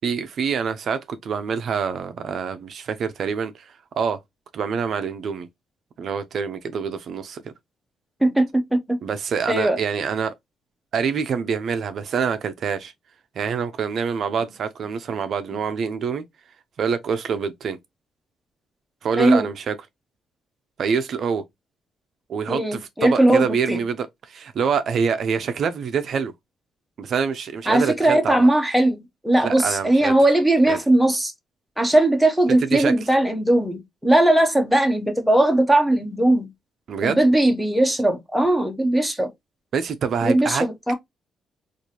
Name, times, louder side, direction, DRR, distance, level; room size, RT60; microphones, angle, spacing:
voice 1, 0.0-4.2 4.5-5.5 6.0-7.4 9.0-10.3 10.9-12.9 13.4-16.2 16.8-17.8 19.0-19.8 20.8-21.4 22.3-26.3 27.0-28.5 29.4-30.2 30.7-30.8 32.7-32.9 36.9-37.2 39.7-40.6, right 6 dB, 45° right, 0.4 m, -26 dB
voice 2, 8.2-9.0 9.5-9.8 15.5-15.6 19.2-19.5 22.5-23.8 27.7-31.3 31.8-36.5 37.0-39.3 40.2-40.9, right 1 dB, ahead, 0.6 m, -19 dB
4.5 x 2.4 x 2.7 m
cardioid pair, 170°, 0 cm